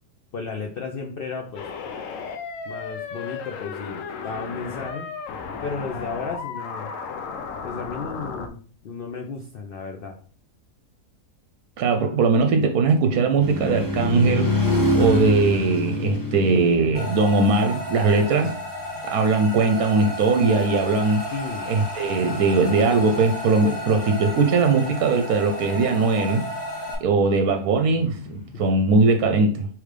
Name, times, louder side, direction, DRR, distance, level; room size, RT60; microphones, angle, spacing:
voice 1, 0.3-1.7 2.7-5.1 5.6-6.9 7.6-10.2 21.3-21.7 28.5-28.6, left 4 dB, 90° left, 0.5 m, -34 dB
sound 1, 1.6-8.5, left 5 dB, 65° left, 0.9 m, -34 dB
voice 2, 11.8-14.5 14.9-18.5 19.1-21.2 21.7-26.4 27.0-29.7, right 4 dB, 75° right, 1.0 m, -20 dB
sound 2, 13.4-18.3 27.9-28.5, left 1 dB, 20° left, 0.5 m, -25 dB
sound 3, 16.9-26.9, equal, 45° left, 2.0 m, -33 dB
5.0 x 3.2 x 3.2 m
omnidirectional pair, 1.7 m